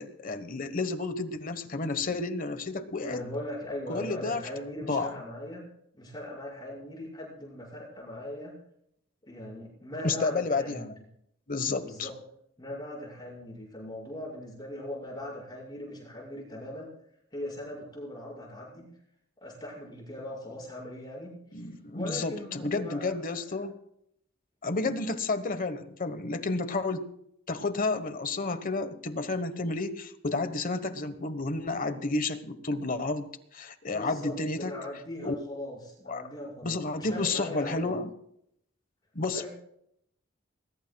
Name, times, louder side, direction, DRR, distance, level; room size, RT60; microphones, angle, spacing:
voice 1, 0.0-3.2 3.9-4.4 4.8-5.1 10.0-10.9 11.5-12.1 21.5-23.7 24.6-27.1 27.5-34.7 35.2-35.3 36.1-36.2 36.6-38.1 39.1-39.5, left 3 dB, 45° left, 10 dB, 1.3 m, -31 dB
voice 2, 3.0-5.7 5.9-8.5 9.3-10.9 11.8-12.2 12.6-16.9 17.3-18.9 19.4-21.7 21.9-23.1 24.6-24.8 33.9-38.0 39.3-39.5, left 1 dB, 20° left, -5 dB, 6.0 m, -40 dB
21.0 x 20.5 x 2.3 m, 0.73 s
head